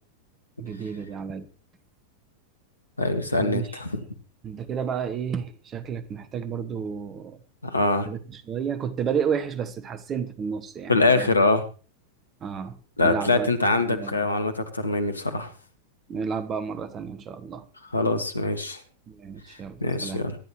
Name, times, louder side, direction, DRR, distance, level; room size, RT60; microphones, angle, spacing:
voice 1, 0.6-1.5 3.4-3.7 4.4-7.4 8.1-11.3 12.4-12.8 13.0-14.2 16.1-17.6 19.1-20.2, right 7 dB, 25° right, 1.2 m, -31 dB
voice 2, 3.0-4.0 7.6-8.1 10.9-11.6 13.0-15.5 17.9-18.8 19.8-20.4, left 2 dB, 80° left, 1.9 m, -23 dB
24.0 x 10.5 x 3.2 m
figure-of-eight pair, 90°, 0 cm